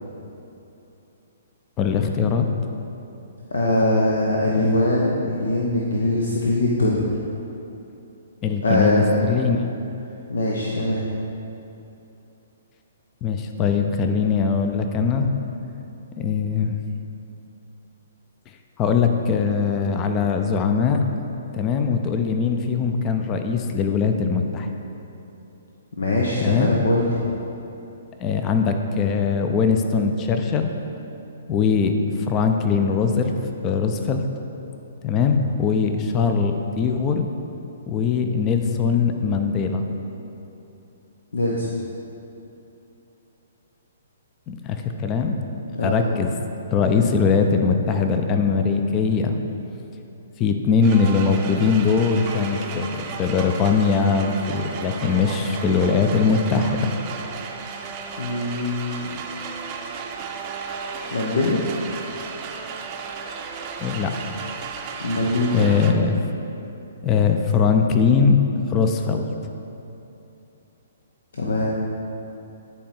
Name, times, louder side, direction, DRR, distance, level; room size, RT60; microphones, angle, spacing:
voice 1, 1.8-2.5 8.4-9.7 13.2-15.3 16.2-16.8 18.8-21.1 21.5-24.7 26.4-26.7 28.2-30.7 31.5-32.0 32.3-33.3 33.6-34.2 35.0-37.3 37.9-39.8 44.5-45.4 45.8-46.3 46.7-49.4 50.4-56.9 63.8-64.1 65.5-66.2 67.0-68.4 68.7-69.3, left 5 dB, 25° left, 5 dB, 0.6 m, -21 dB
voice 2, 3.5-7.1 8.6-9.1 10.3-11.0 26.0-27.2 41.3-41.7 45.7-46.1 58.2-59.1 61.1-61.6 65.0-65.7 71.3-71.7, left 1 dB, 70° left, -3 dB, 0.9 m, -22 dB
sound 1, 50.8-65.9, right 5 dB, 35° right, 0.6 m, -34 dB
10.0 x 4.6 x 4.5 m, 2.9 s
figure-of-eight pair, 125°, 0 cm